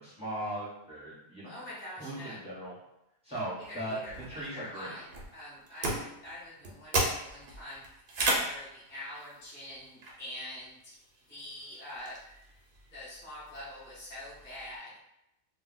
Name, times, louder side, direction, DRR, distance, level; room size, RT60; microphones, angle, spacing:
voice 1, 0.0-1.6 2.0-2.7 3.2-4.0 4.3-4.9, right 1 dB, 5° right, -8 dB, 1.0 m, -38 dB
voice 2, 1.4-2.4 3.6-5.1 5.3-10.9 11.3-12.2 12.9-14.9, left 1 dB, 10° left, -10 dB, 0.6 m, -45 dB
sound 1, 3.6-14.8, right 2 dB, 55° right, 0.7 m, -37 dB
2.2 x 2.2 x 3.9 m, 0.85 s
omnidirectional pair, 1.3 m